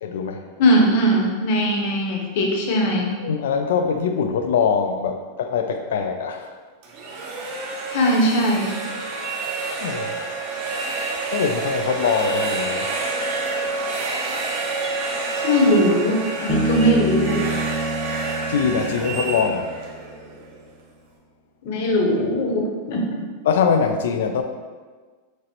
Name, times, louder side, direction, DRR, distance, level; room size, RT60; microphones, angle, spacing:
voice 1, 0.0-0.4 3.2-6.5 9.8-10.2 11.3-12.9 18.5-19.7 23.5-24.4, left 6 dB, 90° left, 6 dB, 0.3 m, -23 dB
voice 2, 0.6-3.1 7.9-8.8 15.4-17.5 21.6-23.0, equal, 55° left, 0 dB, 0.7 m, -20 dB
sound 1, 6.8-20.7, right 3 dB, 50° right, 0.7 m, -28 dB
sound 2, 9.2-10.0 10.7-11.5 12.0-12.7 13.2-13.7 14.1-14.2 14.7-15.1 15.4-16.0 16.2-16.4 16.7-17.0 17.4-17.9 18.1-18.4 18.9-19.5, right 4 dB, 20° right, 0.4 m, -36 dB
Bass guitar, 16.5-20.0, right 3 dB, 25° left, 0.6 m, -27 dB
6.0 x 2.0 x 2.9 m, 1.4 s
supercardioid pair, 165°, 0 cm